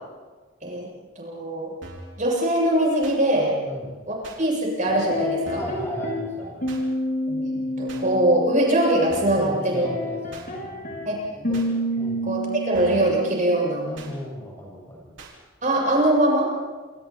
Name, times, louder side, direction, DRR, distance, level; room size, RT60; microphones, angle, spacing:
voice 1, 1.2-1.7 2.2-3.6 4.1-5.6 7.3-9.9 11.1-11.6 12.2-13.9 15.6-16.5, right 1 dB, 40° right, -2 dB, 7.9 m, -22 dB
sound 1, 1.8-2.2 3.0-3.2 4.2-4.4 5.4-5.8 6.7-6.8 7.9-8.1 9.1-9.5 10.3-10.5 11.5-11.7 12.7-13.1 14.0-14.1 15.2-15.3, right 2 dB, 65° right, 4.6 m, -41 dB
sound 2, 4.9-6.3 6.6-9.3 9.6-14.0, equal, 45° left, 5.9 m, -29 dB
voice 2, 5.6-6.7 9.4-10.9 12.0-12.2 13.8-15.1, equal, 15° left, -2 dB, 6.3 m, -36 dB
28.5 x 28.0 x 4.4 m, 1.3 s
head